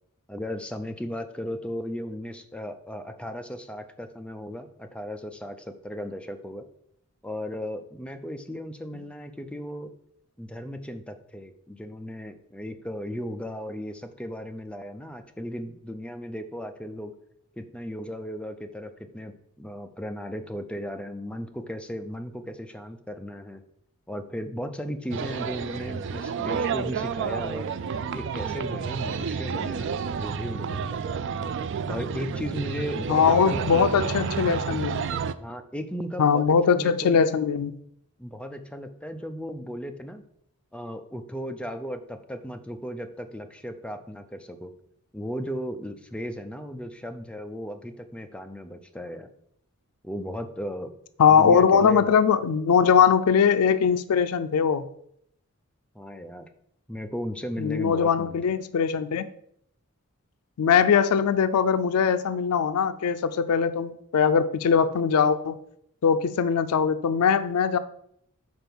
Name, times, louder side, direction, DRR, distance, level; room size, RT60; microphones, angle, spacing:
voice 1, 0.3-6.6 7.2-9.9 10.4-17.1 17.5-23.6 24.1-27.7 28.1-31.2 31.9-33.9 35.4-37.2 38.2-40.2 40.7-44.7 45.1-49.3 50.0-50.9 51.3-52.1 55.9-56.5 56.9-58.4, equal, 5° left, 6 dB, 0.5 m, -36 dB
sound 1, 25.1-35.3, right 6 dB, 55° right, 0.3 m, -30 dB
voice 2, 33.1-35.0 36.2-37.7 51.2-54.8 57.6-59.3 60.6-65.6 66.0-67.8, left 6 dB, 90° left, 12 dB, 0.4 m, -21 dB
5.3 x 4.6 x 6.0 m, 0.71 s
head